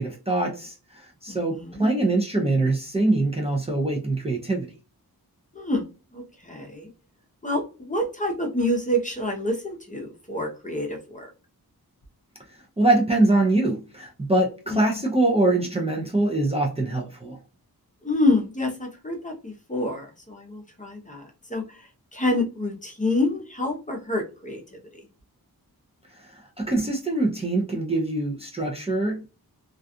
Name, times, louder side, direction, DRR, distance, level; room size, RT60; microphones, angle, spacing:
voice 1, 0.0-4.7 12.8-17.4 26.2-29.3, right 2 dB, 15° right, 0.5 m, -23 dB
voice 2, 1.3-1.9 5.5-5.8 6.1-6.9 7.4-11.3 14.7-14.9 18.0-21.2 21.5-25.0, left 1 dB, 20° left, 0.7 m, -27 dB
2.4 x 2.3 x 2.6 m
wide cardioid pair, 95°, 37 cm